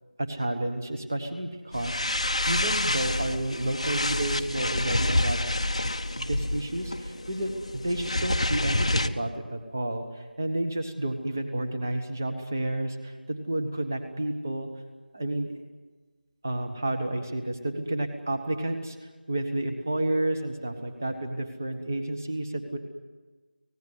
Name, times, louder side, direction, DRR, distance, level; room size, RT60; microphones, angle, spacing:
voice 1, 0.2-5.4 6.2-14.7 15.1-15.5 16.4-22.8, right 1 dB, 15° right, 6 dB, 1.2 m, -31 dB
sound 1, 1.7-9.1, left 1 dB, 35° left, 0.9 m, -28 dB
25.0 x 18.5 x 9.4 m, 1.3 s
figure-of-eight pair, 180°, 5 cm